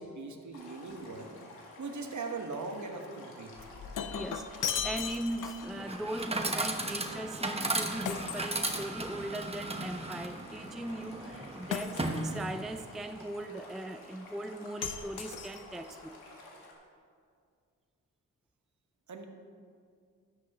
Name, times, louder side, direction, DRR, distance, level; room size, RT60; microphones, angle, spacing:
voice 1, 0.0-1.3 1.8-3.5 19.1-19.3, right 3 dB, 55° right, 4 dB, 1.3 m, -40 dB
Stream, 0.5-16.7, left 2 dB, 80° left, 1.7 m, -52 dB
Shatter, 3.6-5.8 8.1-9.3 11.7-12.5 14.8-15.9, left 8 dB, 60° left, 0.7 m, -37 dB
voice 2, 4.1-16.2, right 1 dB, ahead, 8 dB, 0.4 m, -39 dB
Chatter / Coin (dropping), 5.7-12.8, right 2 dB, 15° right, 1.1 m, -36 dB
12.5 x 9.6 x 3.0 m, 2.2 s
supercardioid pair, 50°, 35 cm